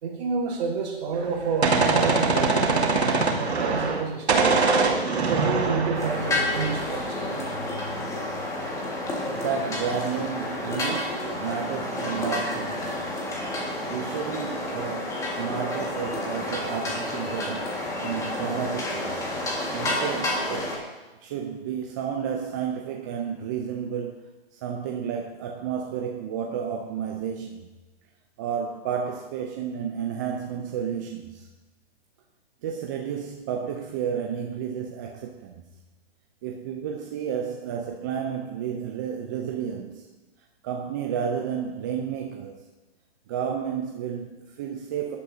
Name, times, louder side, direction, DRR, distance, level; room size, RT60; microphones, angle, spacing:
voice 1, 0.0-3.0 3.4-4.4 5.2-7.5, right 5 dB, 40° right, 4.0 m, -29 dB
Gunshot gunfire, 1.2-4.0 4.3-7.0, right 4 dB, 80° right, 2.3 m, -23 dB
sound 1, 5.9-20.8, left 1 dB, 10° left, 1.7 m, -30 dB
voice 2, 9.2-13.1 13.9-19.2 19.7-20.8 21.2-27.7 28.4-31.5 32.6-35.6 36.4-40.1 40.6-42.6 43.3-45.2, right 7 dB, 20° right, 0.4 m, -31 dB
17.5 x 11.0 x 2.7 m
hypercardioid pair, 140°, 32 cm